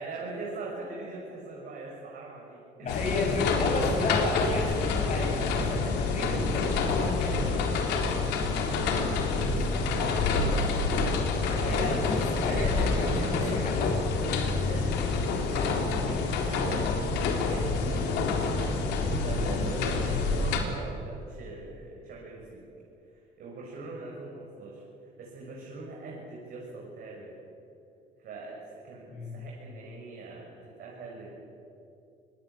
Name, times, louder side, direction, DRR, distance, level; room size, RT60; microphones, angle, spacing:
voice 1, 0.0-2.9 5.1-5.5 8.7-10.7 11.4-12.0 12.4-13.6 14.1-22.6 23.1-24.8 25.2-27.3 28.2-31.4, right 3 dB, 65° right, -3 dB, 7.0 m, -42 dB
voice 2, 2.8-7.6 11.5-14.2 29.1-29.4, left 2 dB, 45° left, 0 dB, 7.7 m, -33 dB
sound 1, 2.9-20.6, left 4 dB, 90° left, 3.6 m, -27 dB
26.5 x 21.0 x 8.4 m, 2.7 s
cardioid pair, 110°, 17 cm